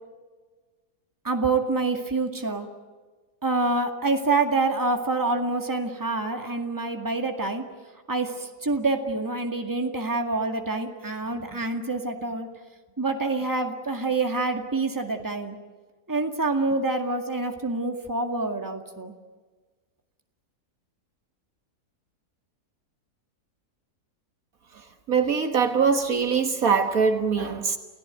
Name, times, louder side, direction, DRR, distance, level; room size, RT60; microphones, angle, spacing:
voice 1, 1.2-2.7 3.4-7.6 8.1-12.5 13.0-15.6 16.1-19.1, right 3 dB, 10° right, 2.0 m, -26 dB
voice 2, 25.1-27.8, right 5 dB, 65° right, 1.8 m, -22 dB
29.0 x 17.0 x 9.1 m
omnidirectional pair, 1.7 m